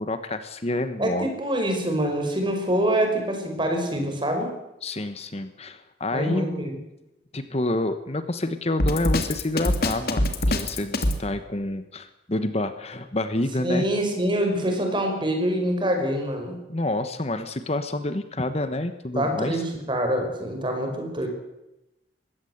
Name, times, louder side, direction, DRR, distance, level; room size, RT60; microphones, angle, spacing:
voice 1, 0.0-1.3 4.8-6.5 7.3-13.9 16.7-19.6, left 2 dB, 35° left, 10 dB, 1.2 m, -28 dB
voice 2, 1.0-4.5 6.1-6.8 13.6-16.5 19.1-21.3, right 1 dB, 25° right, 4 dB, 5.5 m, -25 dB
Drum kit, 8.8-11.2, left 1 dB, 60° left, 2.7 m, -23 dB
22.5 x 16.5 x 8.0 m, 0.92 s
head